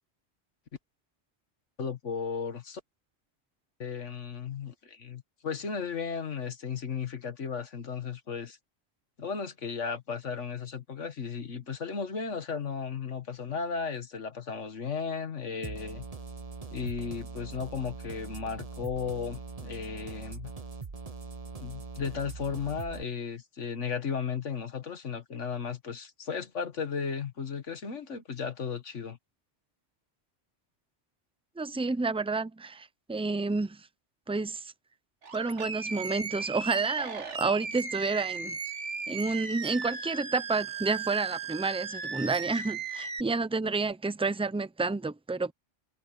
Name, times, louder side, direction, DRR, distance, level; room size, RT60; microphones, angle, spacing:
voice 1, 1.8-2.8 3.8-8.6 9.2-16.1 16.7-20.5 21.6-29.2, left 6 dB, 75° left, 1.9 m, -35 dB
sound 1, 15.6-23.0, right 4 dB, 30° right, 1.1 m, -42 dB
voice 2, 31.6-33.8 34.3-34.7 35.3-38.6 39.1-45.5, right 3 dB, 5° right, 0.5 m, -30 dB
Animal, 35.2-43.2, right 5 dB, 70° right, 1.9 m, -37 dB
omnidirectional pair, 1.2 m